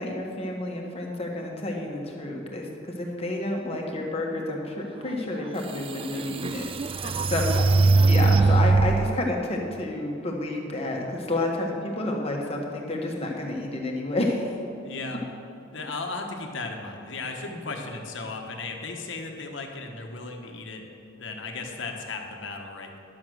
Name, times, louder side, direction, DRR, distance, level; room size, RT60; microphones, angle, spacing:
voice 1, 0.0-7.6 8.1-14.5, left 2 dB, 30° left, 0 dB, 1.4 m, -30 dB
sound 1, 5.3-5.4 6.0-9.1, right 3 dB, 25° right, 0.3 m, -21 dB
voice 2, 7.0-7.5 14.8-15.2 15.7-20.8 21.2-23.0, left 3 dB, 65° left, 3 dB, 1.3 m, -36 dB
11.5 x 7.2 x 6.3 m, 2.6 s
head